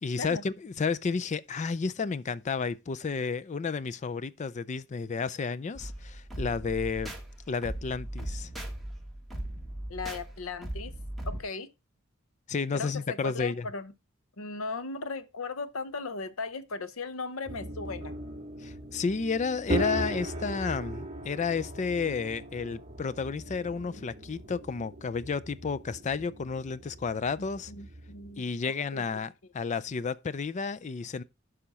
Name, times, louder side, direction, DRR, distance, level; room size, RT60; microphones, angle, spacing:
voice 1, 0.0-7.1 7.5-8.5 12.5-13.7 18.6-27.7 28.4-31.2, left 5 dB, 35° left, 0.4 m, -32 dB
sound 1, 5.7-11.4, right 1 dB, ahead, 1.7 m, -38 dB
voice 2, 9.9-10.9 11.3-11.7 12.7-13.9 14.4-18.1 27.7-28.4 28.9-29.1, left 3 dB, 75° left, 0.8 m, -37 dB
sound 2, 17.5-28.4, right 1 dB, 30° right, 1.9 m, -38 dB
11.5 x 5.1 x 4.2 m
head